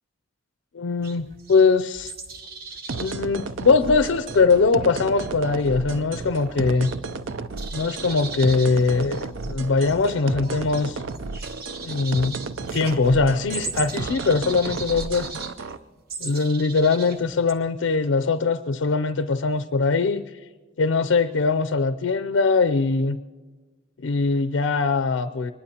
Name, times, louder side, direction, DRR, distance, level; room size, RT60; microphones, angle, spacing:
voice 1, 0.7-2.1 2.9-6.9 7.7-11.0 11.8-12.4 12.7-15.4 16.2-20.2 20.8-23.2 24.0-25.5, left 4 dB, 70° left, 10 dB, 0.4 m, -21 dB
sound 1, 1.0-7.3 7.5-17.5, right 4 dB, 50° right, 1.1 m, -39 dB
sound 2, 2.9-15.8, right 3 dB, 75° right, 0.5 m, -33 dB
24.0 x 21.0 x 2.9 m, 1.3 s
head